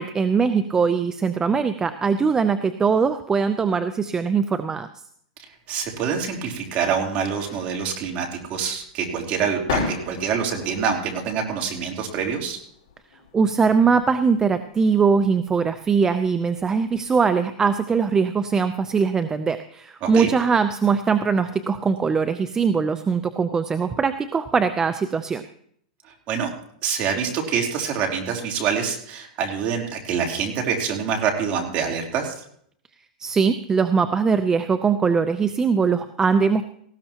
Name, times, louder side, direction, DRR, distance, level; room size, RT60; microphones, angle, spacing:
voice 1, 0.0-4.9 13.3-25.4 33.2-36.6, right 5 dB, 15° right, 10 dB, 0.6 m, -21 dB
voice 2, 5.7-12.6 20.0-20.3 26.3-26.5 26.8-32.3, right 6 dB, 35° right, 1 dB, 3.4 m, -26 dB
sound 1, 5.8-17.1, left 5 dB, 65° left, 5.4 m, -38 dB
18.5 x 16.0 x 2.9 m, 0.64 s
supercardioid pair, 145°, 4 cm